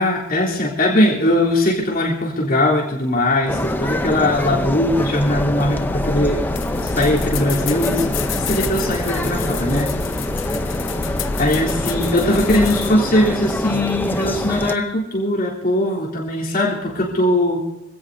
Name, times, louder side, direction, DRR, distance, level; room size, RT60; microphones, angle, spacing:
voice 1, 0.0-6.4 6.8-8.0 8.3-9.9 11.4-17.6, left 1 dB, 45° left, -4 dB, 3.6 m, -20 dB
sound 1, 3.5-14.7, left 1 dB, 10° left, 0.7 m, -25 dB
sound 2, 5.6-12.9, left 4 dB, 90° left, 0.9 m, -27 dB
25.5 x 17.0 x 2.7 m, 0.94 s
head